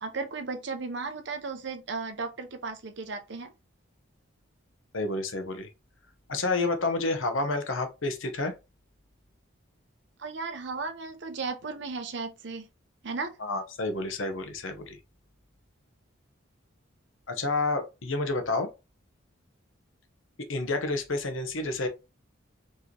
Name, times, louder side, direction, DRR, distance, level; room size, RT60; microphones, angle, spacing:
voice 1, 0.0-3.5 10.2-12.7 13.0-13.3, right 4 dB, 60° right, 0.7 m, -35 dB
voice 2, 4.9-5.7 6.3-8.5 13.4-15.0 17.3-18.7 20.5-21.9, left 2 dB, 80° left, 0.9 m, -29 dB
4.7 x 3.1 x 2.9 m
head